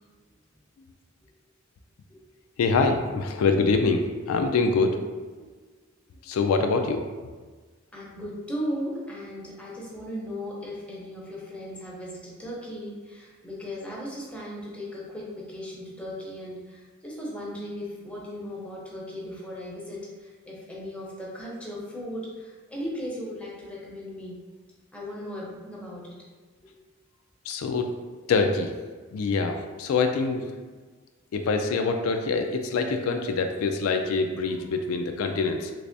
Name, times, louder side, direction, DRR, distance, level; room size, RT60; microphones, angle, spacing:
voice 1, 2.6-5.0 5.4-5.5 6.2-7.0 27.5-27.9 28.2-28.7 29.1-30.5 31.3-35.7, left 4 dB, 80° left, 5 dB, 0.3 m, -25 dB
voice 2, 7.9-24.4 24.9-26.2 26.6-26.7, equal, 5° left, -5 dB, 0.7 m, -37 dB
3.3 x 3.3 x 2.6 m, 1.4 s
head